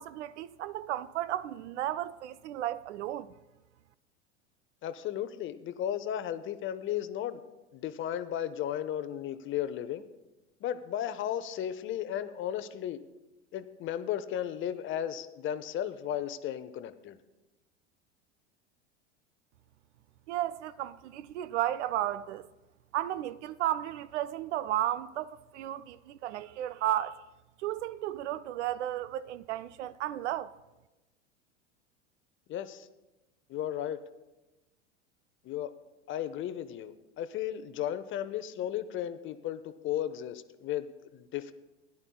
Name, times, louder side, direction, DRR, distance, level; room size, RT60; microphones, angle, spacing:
voice 1, 0.0-3.3 20.3-22.5 22.9-27.2 27.6-30.5, right 13 dB, 70° right, 0.5 m, -33 dB
voice 2, 4.8-7.4 7.7-10.0 10.6-13.0 13.5-17.2 32.5-32.9 33.5-34.0 35.4-35.7 36.1-41.5, left 10 dB, 35° left, 0.6 m, -35 dB
17.0 x 11.0 x 2.3 m
hypercardioid pair, 85°, 36 cm